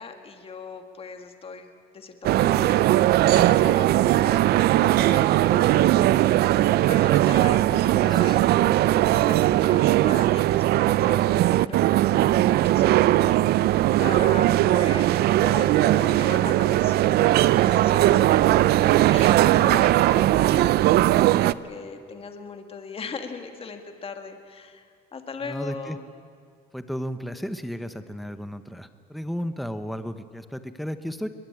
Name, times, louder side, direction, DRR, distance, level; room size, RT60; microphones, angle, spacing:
voice 1, 0.0-1.7 1.9-4.5 4.8-6.4 6.8-26.0, left 5 dB, 35° left, 6 dB, 1.9 m, -39 dB
sound 1, 2.2-21.5, right 14 dB, 70° right, 0.5 m, -19 dB
voice 2, 7.6-8.4 25.4-26.0 26.7-31.3, equal, ahead, 10 dB, 1.0 m, -34 dB
21.5 x 21.5 x 8.7 m, 2.1 s
cardioid pair, 110°, 17 cm